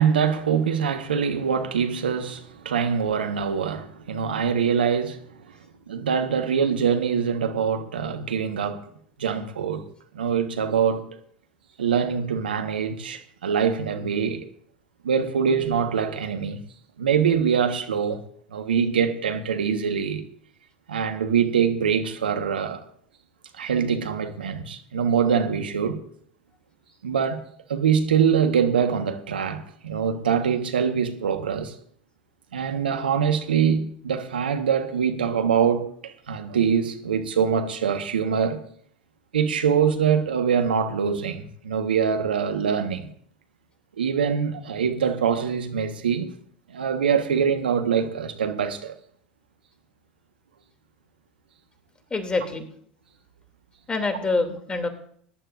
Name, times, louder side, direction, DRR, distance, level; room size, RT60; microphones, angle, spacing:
voice 1, 0.0-5.3 5.9-8.8 9.2-9.8 10.1-11.0 11.8-14.5 15.0-16.6 17.0-18.2 18.5-20.2 20.9-22.8 23.5-26.0 27.0-27.4 27.7-31.7 32.5-38.6 39.3-43.1 44.0-46.3 46.7-48.9, right 7 dB, 80° right, 1.4 m, -24 dB
voice 2, 52.1-52.7 53.9-54.9, left 3 dB, 20° left, 2.7 m, -25 dB
22.0 x 11.0 x 2.6 m
hypercardioid pair, 80°, 5 cm